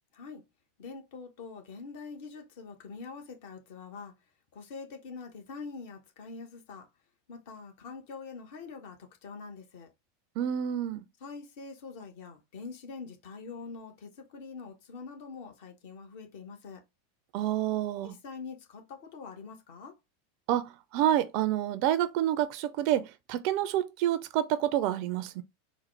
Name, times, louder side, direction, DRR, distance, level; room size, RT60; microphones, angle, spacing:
voice 1, 0.8-4.1 4.5-6.9 7.3-9.9 11.2-16.8 18.0-20.0, left 4 dB, 55° left, 0.9 m, -44 dB
voice 2, 10.4-11.0 17.3-18.1 20.5-25.4, right 12 dB, 50° right, 0.4 m, -28 dB
4.0 x 2.0 x 3.1 m
figure-of-eight pair, 85°, 0 cm